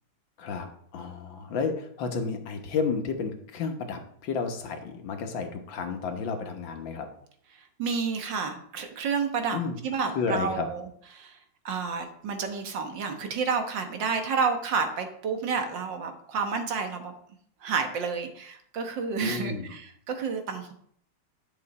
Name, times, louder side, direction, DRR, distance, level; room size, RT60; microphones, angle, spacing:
voice 1, 0.9-7.1 9.5-9.8 10.2-10.7 19.2-19.7, left 5 dB, 75° left, 5 dB, 1.9 m, -31 dB
voice 2, 7.6-10.9 11.1-11.4 11.7-17.1 17.6-20.7, right 5 dB, 70° right, 5 dB, 1.9 m, -30 dB
10.5 x 6.5 x 4.2 m, 0.64 s
omnidirectional pair, 2.1 m